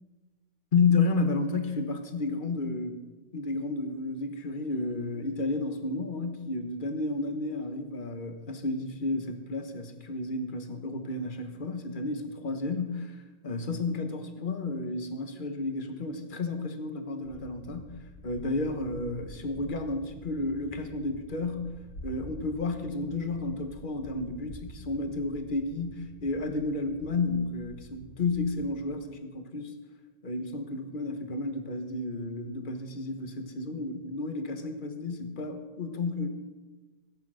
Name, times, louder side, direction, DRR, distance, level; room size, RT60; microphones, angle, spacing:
voice 1, 0.7-3.0 3.3-13.2 13.4-17.9 18.2-21.7 22.0-29.7 30.2-36.3, left 3 dB, 35° left, 6 dB, 1.3 m, -31 dB
sound 1, 17.2-28.8, equal, 85° left, 3.5 m, -48 dB
15.5 x 8.6 x 6.3 m, 1.2 s
omnidirectional pair, 1.6 m